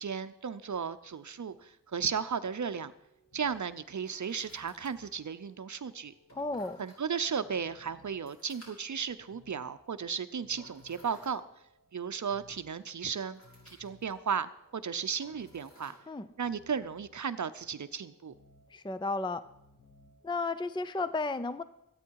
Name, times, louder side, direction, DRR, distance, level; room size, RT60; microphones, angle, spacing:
voice 1, 0.0-2.9 3.3-6.1 6.8-11.4 11.9-13.4 13.8-15.9 16.4-18.3, right 6 dB, 60° right, 12 dB, 0.7 m, -35 dB
sound 1, 0.6-18.0, equal, 40° left, 4.7 m, -62 dB
sound 2, 2.0-21.0, left 3 dB, 80° left, 5.0 m, -64 dB
voice 2, 6.4-6.8 16.1-16.3 18.7-19.4 20.2-21.6, left 3 dB, 15° left, 14 dB, 0.5 m, -33 dB
22.5 x 8.9 x 4.7 m, 0.83 s
wide cardioid pair, 95°, 34 cm